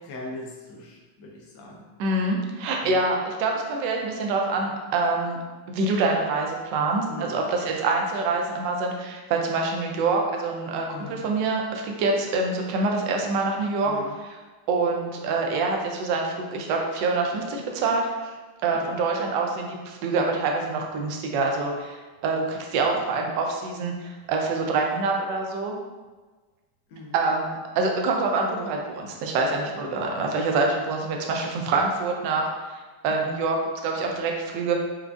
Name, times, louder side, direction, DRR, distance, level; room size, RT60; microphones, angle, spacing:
voice 1, 0.0-1.9 2.8-3.0 7.1-7.7 10.9-11.2 13.8-14.2 18.7-19.0 22.8-23.2 26.9-27.2 29.7-30.0 33.1-33.3, left 3 dB, 75° left, -1 dB, 1.3 m, -41 dB
voice 2, 2.0-5.4 5.7-13.9 14.7-18.3 18.6-22.0 22.2-25.7 27.1-32.7 33.0-33.6 33.8-34.7, right 3 dB, 75° right, 1 dB, 1.1 m, -25 dB
4.5 x 2.3 x 2.4 m, 1.3 s
omnidirectional pair, 2.1 m